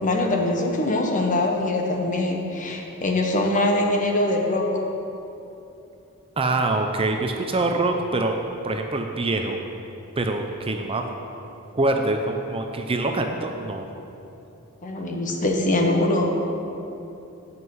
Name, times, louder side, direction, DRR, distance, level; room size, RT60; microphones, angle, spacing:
voice 1, 0.0-4.7 14.8-16.4, left 1 dB, 35° left, 1 dB, 1.1 m, -23 dB
voice 2, 6.4-9.6 10.2-11.0 11.7-13.8, right 2 dB, 25° right, 4 dB, 0.5 m, -24 dB
8.2 x 5.6 x 7.7 m, 2.9 s
head